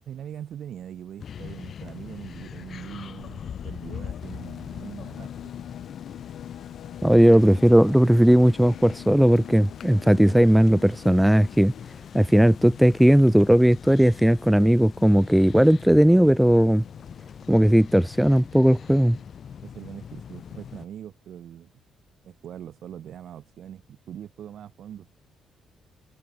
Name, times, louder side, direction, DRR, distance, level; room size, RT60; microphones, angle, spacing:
voice 1, 0.1-5.5 19.6-21.7 22.2-25.1, right 10 dB, 65° right, 4.1 m, -41 dB
sound 1, 1.2-20.9, left 8 dB, 55° left, 0.9 m, -41 dB
sound 2, 2.7-11.9, left 13 dB, 80° left, 8.0 m, -44 dB
voice 2, 7.0-11.7 12.1-16.8 17.5-19.2, equal, 5° right, 0.3 m, -17 dB
cardioid pair, 90°, 0 cm